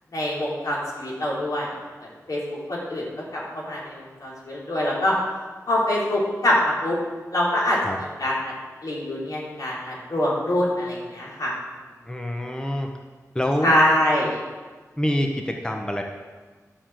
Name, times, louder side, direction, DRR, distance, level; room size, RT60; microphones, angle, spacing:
voice 1, 0.1-1.7 2.3-3.1 3.3-5.1 5.7-7.0 7.3-7.8 8.2-8.5 8.8-11.5 13.6-14.4, left 1 dB, 85° left, -5 dB, 3.9 m, -24 dB
voice 2, 12.1-12.9 13.3-13.8 15.0-16.0, equal, 15° left, 3 dB, 1.0 m, -26 dB
11.5 x 6.6 x 7.6 m, 1.4 s
wide cardioid pair, 105°, 6 cm